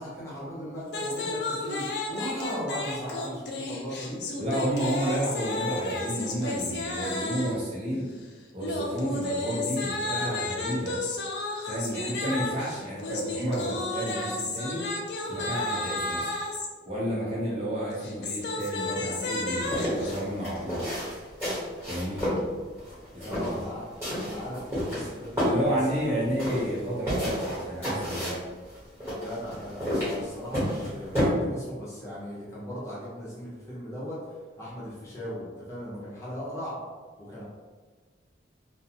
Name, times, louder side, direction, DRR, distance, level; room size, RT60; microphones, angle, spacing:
voice 1, 0.0-4.2 23.2-23.9 24.1-26.0 29.1-34.2 34.6-36.7 37.2-37.4, equal, 15° left, -8 dB, 0.6 m, -37 dB
sound 1, 0.9-7.6 8.6-16.7 17.9-20.2, left 2 dB, 60° left, 0.4 m, -32 dB
voice 2, 4.4-8.1 8.5-11.0 11.6-14.8 15.3-16.3 16.8-20.9 21.8-22.4 23.1-23.6 25.4-28.4, right 1 dB, 30° right, -8 dB, 0.7 m, -31 dB
sound 2, 19.6-31.2, left 1 dB, 15° right, 1.1 m, -31 dB
2.5 x 2.2 x 2.8 m, 1.4 s
head